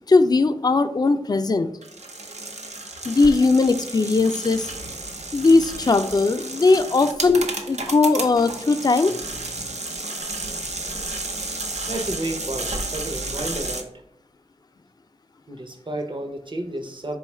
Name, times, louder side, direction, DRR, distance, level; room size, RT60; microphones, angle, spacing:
voice 1, 0.1-1.7 3.0-4.7 5.3-9.1, left 3 dB, 35° left, 9 dB, 0.3 m, -19 dB
sound 1, 1.8-13.8, right 2 dB, 90° right, 0.6 m, -32 dB
voice 2, 11.9-13.9 15.5-17.2, right 1 dB, 45° right, 5 dB, 0.6 m, -31 dB
4.1 x 2.3 x 4.2 m, 0.74 s
wide cardioid pair, 45°, 11 cm